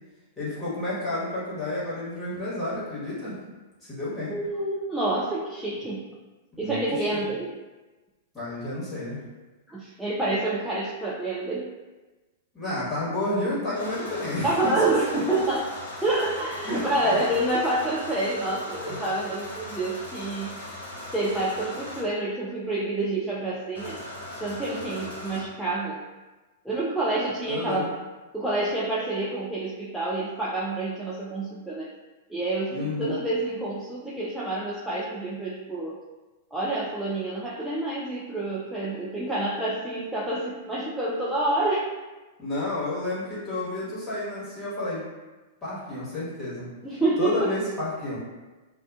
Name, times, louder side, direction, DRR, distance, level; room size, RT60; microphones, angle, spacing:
voice 1, 0.4-3.4 3.8-4.3 6.5-7.2 8.3-9.2 12.5-14.8 15.1-15.2 16.6-17.1 27.4-27.9 32.7-33.2 42.4-45.0 45.6-46.7 47.2-48.2, left 2 dB, 20° left, -9 dB, 1.2 m, -30 dB
voice 2, 4.3-6.0 6.6-7.5 9.7-11.7 14.4-15.7 16.0-20.5 21.1-24.0 24.4-26.0 26.6-27.9 28.3-31.9 32.3-36.0 36.5-41.9 46.8-47.5, right 2 dB, 5° right, -7 dB, 0.4 m, -28 dB
sound 1, 13.7-22.0 23.7-25.4, left 1 dB, 75° left, 0.9 m, -39 dB
2.4 x 2.3 x 2.3 m, 1.2 s
figure-of-eight pair, 100°, 0 cm